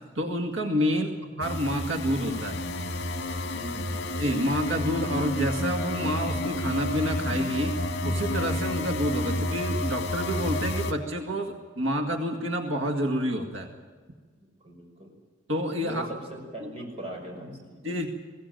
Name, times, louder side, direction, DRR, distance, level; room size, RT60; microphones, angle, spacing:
voice 1, 0.2-1.1 1.4-2.6 4.2-13.7 15.5-16.1 16.6-16.7 17.8-18.1, equal, 90° right, 4 dB, 2.1 m, -28 dB
sound 1, 1.4-10.9, left 1 dB, 60° left, 1.9 m, -30 dB
voice 2, 3.5-4.0 14.3-15.1 15.8-16.0 16.3-17.8, right 1 dB, 30° right, 1 dB, 6.1 m, -40 dB
21.5 x 16.5 x 9.2 m, 1.5 s
head